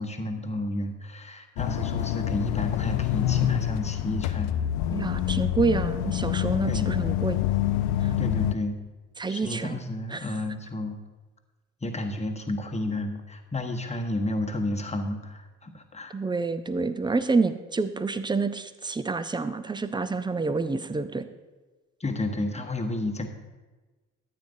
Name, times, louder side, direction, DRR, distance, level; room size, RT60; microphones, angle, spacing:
voice 1, 0.0-4.5 6.7-6.9 8.2-8.8 9.3-11.0 11.8-16.1 22.0-23.3, left 1 dB, 15° left, 4 dB, 1.2 m, -31 dB
sound 1, 1.6-8.5, left 12 dB, 60° left, 0.6 m, -26 dB
voice 2, 4.9-7.4 8.0-8.1 9.2-9.8 10.1-10.3 16.1-21.3, right 4 dB, 10° right, 12 dB, 0.5 m, -28 dB
13.5 x 8.4 x 2.6 m, 1.2 s
figure-of-eight pair, 45°, 41 cm